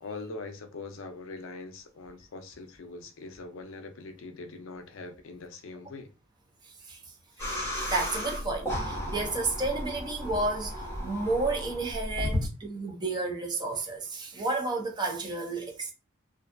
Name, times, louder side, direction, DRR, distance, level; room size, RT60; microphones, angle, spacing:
voice 1, 0.0-6.1 7.3-7.4, left 3 dB, 70° left, 0.5 m, -42 dB
voice 2, 6.6-7.0 7.4-15.9, right 2 dB, 20° right, 0.4 m, -32 dB
sound 1, 7.4-12.5, left 1 dB, 15° left, 0.9 m, -34 dB
2.5 x 2.3 x 2.4 m
head